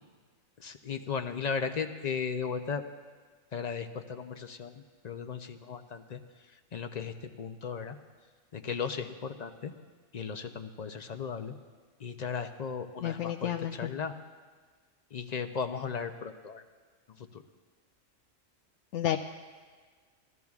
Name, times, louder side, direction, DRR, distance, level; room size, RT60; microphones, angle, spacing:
voice 1, 0.6-2.8 3.5-4.7 5.0-6.2 6.7-8.0 8.5-9.7 10.1-11.5 12.0-14.1 15.1-16.6 17.2-17.4, left 6 dB, 55° left, 7 dB, 0.5 m, -36 dB
voice 2, 13.0-13.9 18.9-19.2, left 11 dB, 75° left, 2 dB, 0.9 m, -31 dB
21.0 x 14.0 x 2.4 m, 1.5 s
omnidirectional pair, 1.3 m